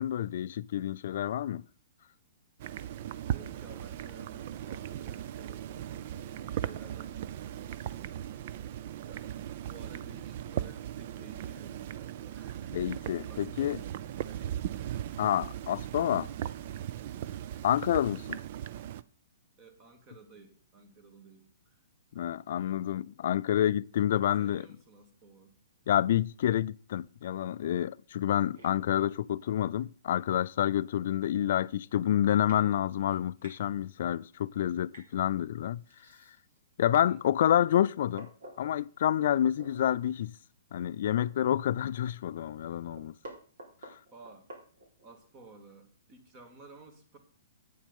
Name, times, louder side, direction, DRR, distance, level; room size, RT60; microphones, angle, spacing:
voice 1, 0.0-1.6 12.7-13.8 15.2-16.3 17.6-18.4 22.1-24.7 25.9-35.8 36.8-38.3 38.6-40.3 40.7-43.1 43.9-44.0, left 11 dB, 60° left, 0.3 m, -28 dB
sound 1, 2.6-19.0, right 11 dB, 50° right, 0.5 m, -38 dB
voice 2, 3.3-8.1 9.1-14.6 17.3-17.6 19.6-21.8 24.4-25.5 37.1-37.2 44.1-44.5 45.0-47.2, right 3 dB, 30° right, 2.1 m, -54 dB
sound 2, 28.5-28.7 30.2-30.3 30.8-30.9 31.1-31.4 32.0-32.1 32.5-32.6 33.0-33.6 34.9-35.1 35.8-36.6 37.1-37.2 37.5-38.7 39.6-39.9 40.3-40.4 40.7-41.9 42.2-42.3 42.6-45.2, right 1 dB, 75° right, 3.9 m, -50 dB
8.6 x 7.2 x 5.4 m
hypercardioid pair, 140°, 0 cm